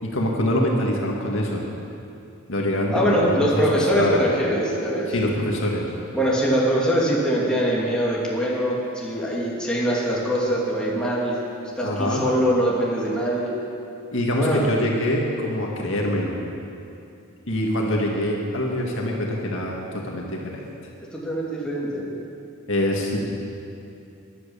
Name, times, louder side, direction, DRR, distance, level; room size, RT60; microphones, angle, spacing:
voice 1, 0.0-1.6 2.5-3.6 4.0-4.1 5.1-5.9 11.8-12.3 14.1-16.4 17.5-20.6 22.7-23.2, left 1 dB, 65° left, -1 dB, 2.1 m, -24 dB
voice 2, 2.9-5.1 6.1-11.4 11.7-13.5 14.3-14.6 21.1-22.1, equal, 5° left, -6 dB, 2.7 m, -23 dB
14.0 x 11.0 x 7.0 m, 2.7 s
head